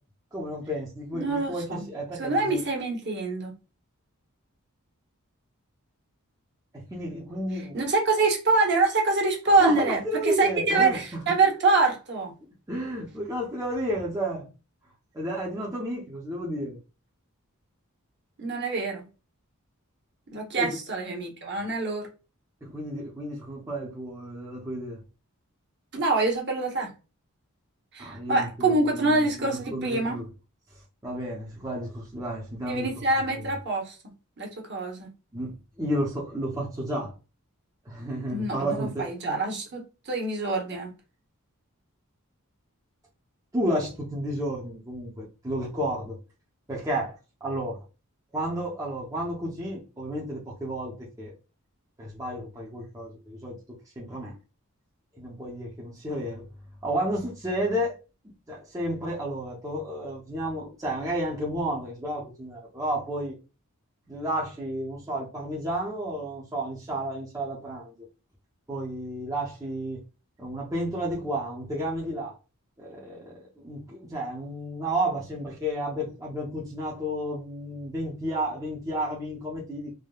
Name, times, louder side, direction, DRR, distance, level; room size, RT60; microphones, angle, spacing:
voice 1, 0.3-2.6 6.7-7.8 9.6-11.4 12.7-14.5 15.1-16.8 20.6-20.8 22.6-25.0 28.0-30.3 31.0-32.9 33.4-33.5 35.3-37.1 37.9-39.1 43.5-46.2 46.7-47.2 47.4-47.8 48.3-51.3 52.0-53.6 54.0-54.4 55.2-56.5 56.8-58.0 58.5-63.4 64.1-68.1 68.7-70.0 70.4-72.4 72.8-79.9, right 1 dB, 15° right, 0.6 m, -32 dB
voice 2, 1.1-1.9 2.2-3.5 7.7-12.3 18.4-19.1 20.3-22.1 25.9-26.9 27.9-30.2 32.7-34.0 34.4-35.1 38.3-40.9, right 3 dB, 50° right, 0.9 m, -25 dB
3.4 x 2.1 x 2.3 m
head